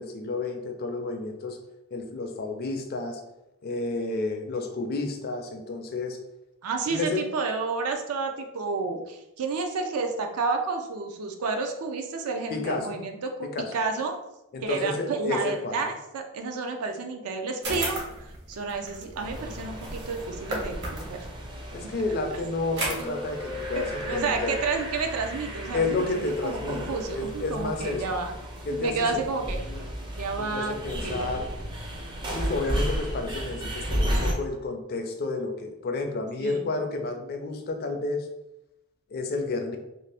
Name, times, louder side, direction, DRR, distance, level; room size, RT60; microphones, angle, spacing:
voice 1, 0.0-1.6 1.9-3.2 3.6-6.2 6.9-7.2 12.5-13.0 13.5-13.7 14.5-15.8 21.7-24.6 25.7-28.0 28.6-29.2 29.6-29.8 30.4-31.5 32.3-38.3 39.1-39.8, left 3 dB, 45° left, 5 dB, 0.4 m, -31 dB
voice 2, 6.6-14.1 14.6-21.3 21.8-21.9 23.7-28.4 28.7-29.6 30.2-31.4 36.4-36.7, right 4 dB, 80° right, 4 dB, 0.4 m, -31 dB
sound 1, 17.6-21.3 22.6-24.2, right 1 dB, 55° right, 0.8 m, -35 dB
sound 2, 19.2-34.3, equal, 20° right, 0.4 m, -34 dB
2.6 x 2.4 x 3.3 m, 0.90 s
head